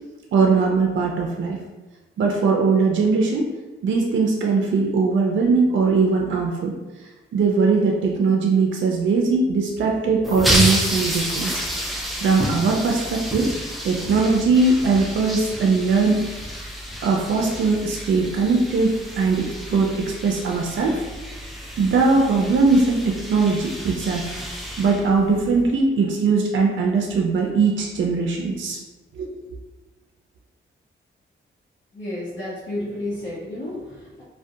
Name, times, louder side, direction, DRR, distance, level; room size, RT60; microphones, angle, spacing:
voice 1, 0.3-1.6 2.2-3.5 3.8-6.7 7.0-11.8 12.2-13.5 13.8-16.3 17.0-21.0 21.8-24.3 24.8-28.8 29.2-29.3, right 4 dB, 65° right, 0 dB, 0.4 m, -20 dB
sound 1, 10.2-25.6, equal, ahead, 0.4 m, -29 dB
voice 2, 31.9-34.2, left 1 dB, 65° left, -9 dB, 0.8 m, -31 dB
2.3 x 2.1 x 2.6 m, 1.2 s
cardioid pair, 80°, 21 cm